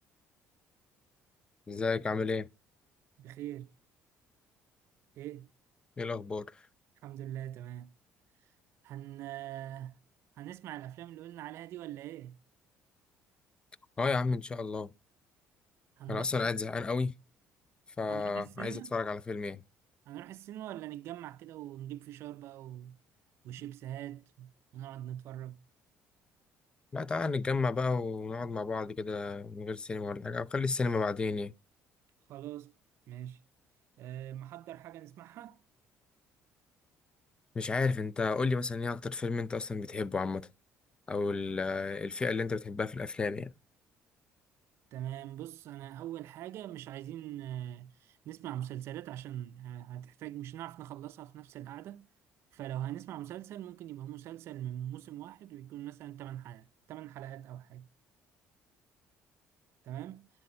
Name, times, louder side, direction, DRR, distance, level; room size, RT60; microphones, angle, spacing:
voice 1, 1.7-2.5 6.0-6.6 14.0-14.9 16.1-17.1 18.0-19.6 26.9-31.5 37.5-40.5 41.1-43.5, left 4 dB, 20° left, 0.5 m, -32 dB
voice 2, 3.2-3.7 5.2-5.5 7.0-7.9 8.8-10.0 10.4-12.4 16.0-16.5 18.1-18.9 20.1-23.0 23.4-25.6 32.3-32.7 33.1-33.4 34.0-35.6 44.9-52.1 52.5-57.9 59.8-60.3, right 12 dB, 65° right, 0.5 m, -42 dB
10.5 x 8.0 x 4.4 m
cardioid pair, 145°, 5 cm